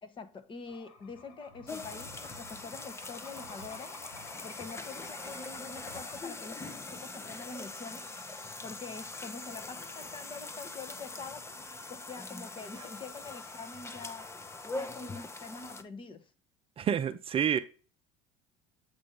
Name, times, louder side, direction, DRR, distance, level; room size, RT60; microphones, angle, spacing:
voice 1, 0.0-4.0 4.4-8.1 8.6-11.6 11.9-14.3 14.7-16.3, left 4 dB, 30° left, 1.1 m, -45 dB
sound 1, 0.6-6.2, left 2 dB, 80° left, 1.9 m, -51 dB
sound 2, 1.7-15.8, left 3 dB, 15° left, 0.7 m, -43 dB
voice 2, 16.8-17.6, right 8 dB, 35° right, 0.5 m, -28 dB
8.0 x 2.8 x 5.1 m
supercardioid pair, 95°, 16 cm